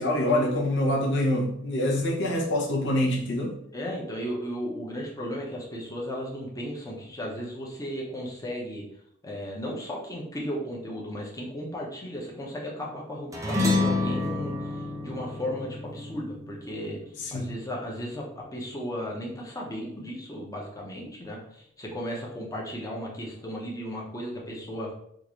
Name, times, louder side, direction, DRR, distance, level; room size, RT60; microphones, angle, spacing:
voice 1, 0.0-3.5 17.2-17.5, left 1 dB, 65° left, 0.8 m, -25 dB
voice 2, 3.7-8.8 9.2-24.9, equal, 20° left, 0.8 m, -35 dB
sound 1, 13.3-18.0, left 2 dB, 15° right, 0.7 m, -29 dB
3.6 x 2.5 x 3.0 m
head